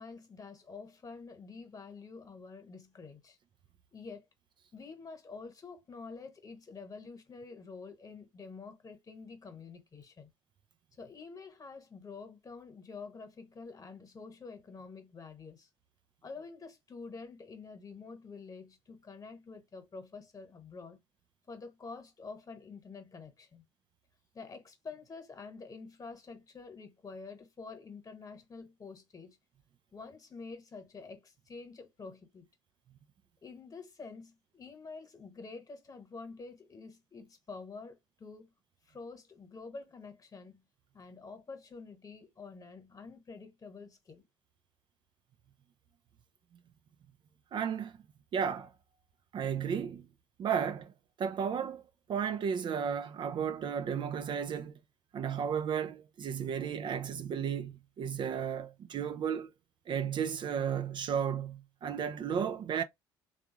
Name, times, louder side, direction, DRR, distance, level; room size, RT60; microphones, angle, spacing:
voice 1, 0.0-3.4 3.9-4.3 4.7-10.3 11.0-15.7 16.2-21.0 21.5-23.7 24.3-29.4 29.9-32.5 33.4-38.5 38.9-40.6 40.9-44.2, left 4 dB, 30° left, 1.2 m, -48 dB
voice 2, 47.5-47.9 48.3-48.7 49.3-50.1 50.4-50.9 51.2-51.8 52.1-54.7 55.1-59.5 59.9-62.8, right 7 dB, 45° right, 0.4 m, -33 dB
3.4 x 2.4 x 3.0 m
hypercardioid pair, 55°, 11 cm